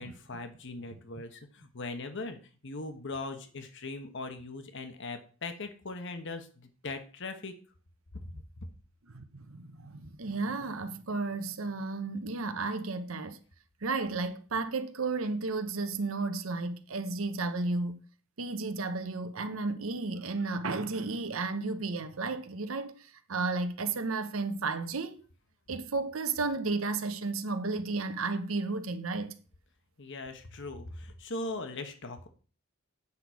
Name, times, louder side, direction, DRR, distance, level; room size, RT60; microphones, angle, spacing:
voice 1, 0.0-2.4 2.6-7.5 30.0-32.3, left 3 dB, 60° left, 1.2 m, -40 dB
voice 2, 9.1-13.4 13.8-18.0 18.4-25.2 25.7-29.3, right 3 dB, 75° right, 0.9 m, -33 dB
8.7 x 6.1 x 4.8 m
head